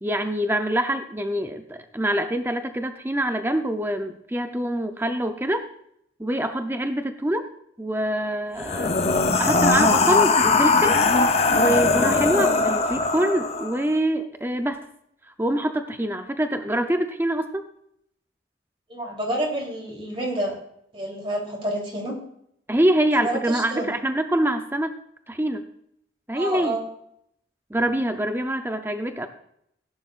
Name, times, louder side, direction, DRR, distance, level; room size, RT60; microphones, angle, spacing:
voice 1, 0.0-5.7 6.2-7.5 7.8-9.0 9.4-11.0 11.5-14.8 15.4-17.6 22.7-25.0 25.3-25.6 26.3-26.8 27.7-29.3, right 1 dB, 10° right, 7 dB, 0.6 m, -25 dB
sound 1, 8.6-13.8, left 3 dB, 35° left, 0.7 m, -20 dB
voice 2, 18.9-20.6 20.9-22.2 23.2-23.9 26.3-26.8, right 1 dB, 30° right, -2 dB, 3.3 m, -28 dB
16.0 x 10.5 x 2.5 m, 0.73 s
head